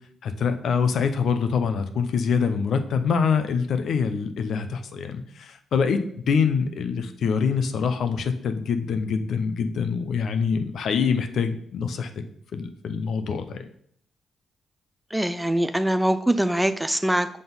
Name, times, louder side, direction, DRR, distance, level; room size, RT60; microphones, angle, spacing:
voice 1, 0.2-6.0 6.3-12.1 12.5-13.7, left 6 dB, 70° left, 8 dB, 0.6 m, -25 dB
voice 2, 15.1-17.3, right 1 dB, 5° right, 11 dB, 0.5 m, -23 dB
5.9 x 3.8 x 5.4 m, 0.65 s
supercardioid pair, 60°, 0 cm